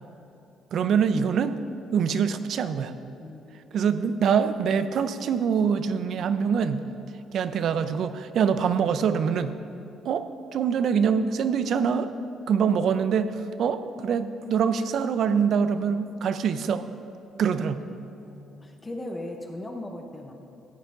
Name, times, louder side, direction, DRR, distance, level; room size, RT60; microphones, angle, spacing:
voice 1, 0.7-1.5 1.9-2.9 3.7-6.8 7.3-9.5 10.0-10.2 10.5-12.1 12.5-13.3 13.6-16.9 17.4-17.8, right 7 dB, 60° right, 11 dB, 0.5 m, -24 dB
voice 2, 18.2-20.3, left 1 dB, 20° left, 2 dB, 0.9 m, -38 dB
13.5 x 8.0 x 3.8 m, 2.8 s
cardioid pair, 115°, 0 cm